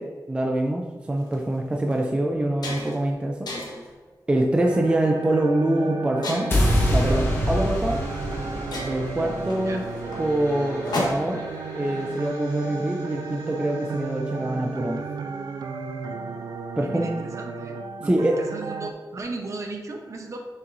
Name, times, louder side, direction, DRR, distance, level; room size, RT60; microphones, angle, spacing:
voice 1, 0.0-3.5 4.3-6.5 6.9-8.0 8.9-9.8 10.2-11.4 11.7-15.0 16.8-17.1 18.1-18.5, right 1 dB, 15° right, 1 dB, 0.4 m, -25 dB
sound 1, 1.2-1.3 1.9-2.0 2.3-3.1 3.5-3.9 4.6-4.9 6.2-6.8 7.9-8.0 8.3-8.4 8.7-11.5, left 2 dB, 80° left, 1.2 m, -33 dB
sound 2, 4.6-18.9, right 5 dB, 75° right, 0.4 m, -34 dB
sound 3, 6.5-12.7, equal, 35° left, 1.0 m, -27 dB
voice 2, 16.7-20.5, right 3 dB, 50° right, 3 dB, 0.8 m, -36 dB
6.7 x 5.5 x 2.6 m, 1.4 s
wide cardioid pair, 160°, 7 cm